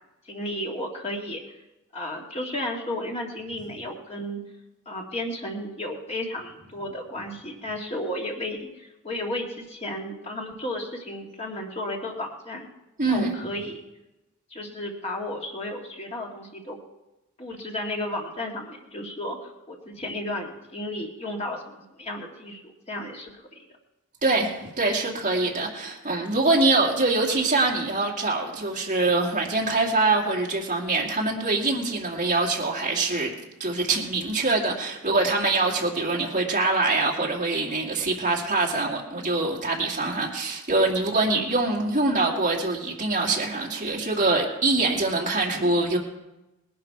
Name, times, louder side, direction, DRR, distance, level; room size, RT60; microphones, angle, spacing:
voice 1, 0.3-1.4 1.9-4.4 4.9-12.7 13.0-13.8 14.5-16.8 17.4-22.6 22.9-23.4 41.2-41.6 45.5-45.8, left 1 dB, 30° left, 0 dB, 1.9 m, -33 dB
voice 2, 13.0-13.3 24.2-33.3 33.6-46.0, right 2 dB, 35° right, -1 dB, 2.3 m, -24 dB
19.0 x 11.5 x 4.6 m, 1.0 s
head